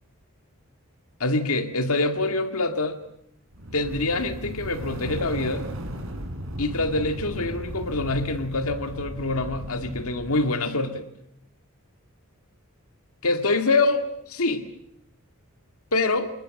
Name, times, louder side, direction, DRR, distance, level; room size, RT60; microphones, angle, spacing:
voice 1, 1.2-3.0 3.7-5.7 6.6-11.0 13.2-14.6 15.9-16.3, left 2 dB, 75° left, 8 dB, 2.1 m, -25 dB
sound 1, 3.5-10.5, equal, 70° right, 3.8 m, -36 dB
29.0 x 19.5 x 7.6 m, 0.76 s
head